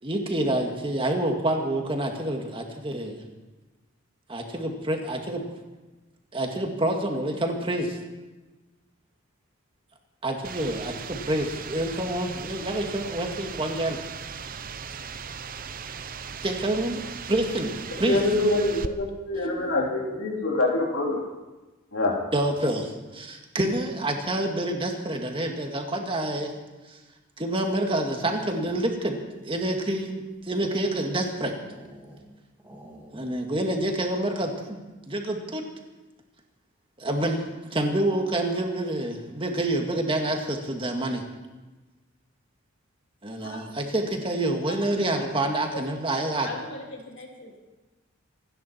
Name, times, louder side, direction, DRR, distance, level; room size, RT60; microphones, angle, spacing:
voice 1, 0.0-3.2 4.3-5.4 6.3-8.0 10.2-14.0 16.4-17.7 18.0-18.2 22.3-26.5 26.9-27.0 27.4-29.2 29.4-31.6 33.1-34.8 35.1-35.6 37.0-37.4 37.7-41.2 43.2-46.5, right 1 dB, 25° right, 3 dB, 1.9 m, -27 dB
sound 1, 10.4-18.9, right 6 dB, 45° right, 0.7 m, -38 dB
voice 2, 17.9-21.2 21.9-22.2, left 2 dB, 90° left, -1 dB, 3.3 m, -25 dB
sound 2, 28.2-29.1 29.7-32.3 32.6-33.7 33.9-34.0 34.3-34.7, equal, 10° right, 3.4 m, -50 dB
voice 3, 46.4-47.6, left 1 dB, 60° left, 0 dB, 3.3 m, -39 dB
28.0 x 10.0 x 4.4 m, 1.2 s
head